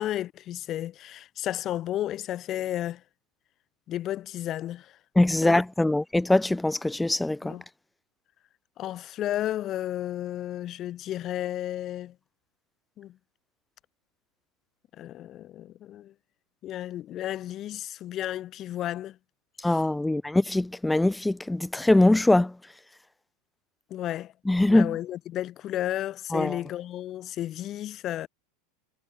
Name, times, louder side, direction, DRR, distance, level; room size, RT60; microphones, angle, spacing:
voice 1, 0.0-3.0 3.9-5.0 5.4-5.6 7.4-7.6 8.8-12.2 13.0-13.2 15.0-16.1 16.6-19.2 19.6-19.8 23.9-24.3 24.7-28.3, left 12 dB, 45° left, 3.3 m, -33 dB
voice 2, 5.2-7.6 19.6-22.5 24.5-25.0 26.3-26.6, left 2 dB, 5° left, 0.5 m, -22 dB
hypercardioid pair, 100°, 0 cm